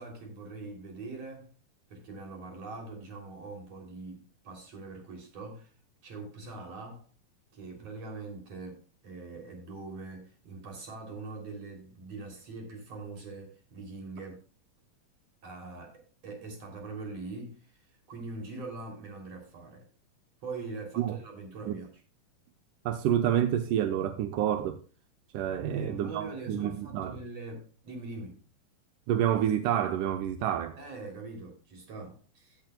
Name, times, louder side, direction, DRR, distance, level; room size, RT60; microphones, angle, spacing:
voice 1, 0.0-1.5 1.9-5.7 6.0-7.1 7.5-14.5 15.4-19.9 20.4-21.9 25.6-28.4 30.8-32.6, right 3 dB, 45° right, 4.0 m, -43 dB
voice 2, 22.9-24.8 25.3-27.2 29.1-30.8, right 10 dB, 80° right, 2.0 m, -28 dB
15.5 x 9.5 x 2.3 m
omnidirectional pair, 4.2 m